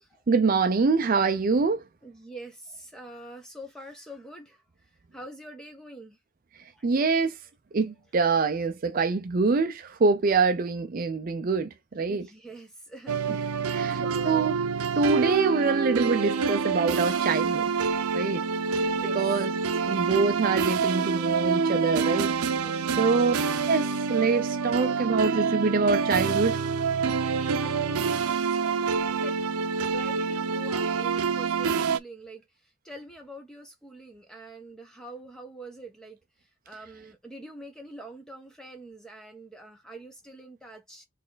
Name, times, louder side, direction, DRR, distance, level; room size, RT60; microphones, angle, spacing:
voice 1, 0.3-1.8 6.8-7.4 7.7-12.3 13.7-14.6 15.0-17.7 18.1-18.4 19.1-19.5 19.8-22.4 23.0-23.3 23.7-26.6, right 4 dB, 40° right, 0.4 m, -25 dB
voice 2, 2.0-4.6 5.1-6.2 6.7-6.9 7.3-7.4 7.9-8.0 12.1-14.5 15.1-15.4 18.8-19.2 22.6-23.1 27.6-29.6 29.9-32.5 32.8-36.2 36.7-41.0, right 1 dB, 5° left, 1.0 m, -45 dB
sound 1, 13.1-32.0, right 5 dB, 90° right, 0.5 m, -27 dB
4.2 x 3.2 x 3.9 m
head